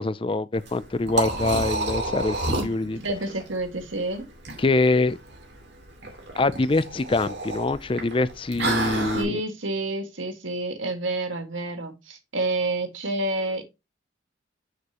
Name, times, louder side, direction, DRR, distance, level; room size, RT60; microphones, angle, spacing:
voice 1, 0.0-3.0 4.6-5.2 6.4-9.4, left 2 dB, 25° left, 0.4 m, -24 dB
Liquid, 0.5-9.2, right 2 dB, 60° right, 2.5 m, -30 dB
voice 2, 3.0-4.3 8.9-13.6, right 2 dB, 85° right, 1.7 m, -29 dB
6.7 x 6.6 x 2.9 m
head